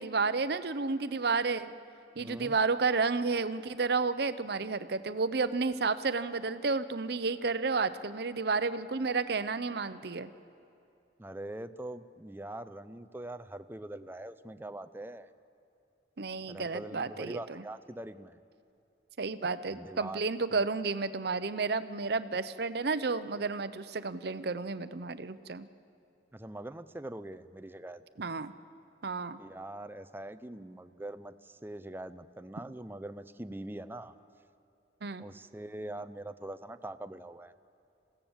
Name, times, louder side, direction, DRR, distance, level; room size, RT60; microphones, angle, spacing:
voice 1, 0.0-1.7 2.2-10.3 16.2-17.6 19.2-25.7 28.2-28.5 29.0-29.4 35.0-35.2, right 4 dB, 60° right, 13 dB, 0.7 m, -31 dB
voice 2, 2.2-2.6 11.2-15.3 16.5-18.4 19.7-20.2 20.5-20.6 26.3-28.0 29.4-34.2 35.2-37.5, right 1 dB, 10° right, 12 dB, 0.5 m, -43 dB
28.0 x 16.0 x 7.2 m, 2.7 s
head